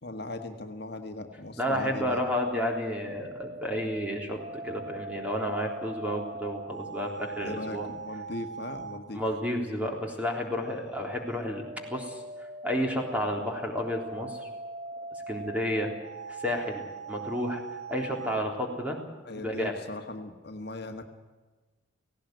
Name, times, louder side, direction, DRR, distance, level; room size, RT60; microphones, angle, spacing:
voice 1, 0.0-2.2 7.4-9.2 19.2-21.0, left 2 dB, 55° left, 5 dB, 1.6 m, -39 dB
voice 2, 1.6-7.9 9.1-12.2 12.6-14.5 15.3-15.9 16.3-16.8 17.1-17.6 17.9-19.0 19.4-19.8, equal, 10° right, 1 dB, 3.6 m, -31 dB
sound 1, 1.7-9.1 11.1-18.4, right 3 dB, 60° right, 1.4 m, -41 dB
18.0 x 17.5 x 9.3 m, 1.3 s
head